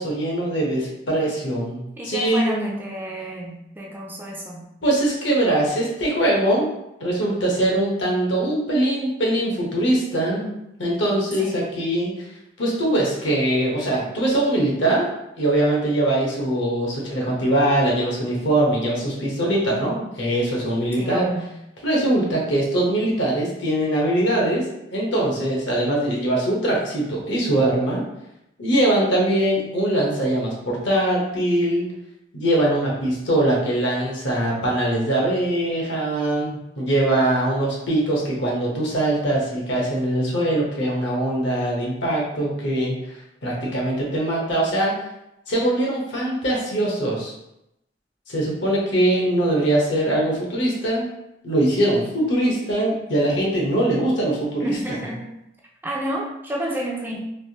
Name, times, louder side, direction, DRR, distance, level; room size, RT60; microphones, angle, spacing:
voice 1, 0.0-2.7 4.8-6.7 7.0-10.5 10.8-12.1 12.6-15.1 15.4-21.3 21.8-24.6 24.9-28.0 28.6-31.8 32.3-44.9 45.5-47.3 48.3-51.1 51.4-55.0, right 1 dB, 70° left, -3 dB, 1.0 m, -22 dB
voice 2, 2.0-4.7 11.4-11.6 20.9-21.5 54.6-55.3 55.8-57.2, right 1 dB, 10° right, -2 dB, 0.3 m, -31 dB
3.4 x 2.5 x 2.8 m, 0.86 s
head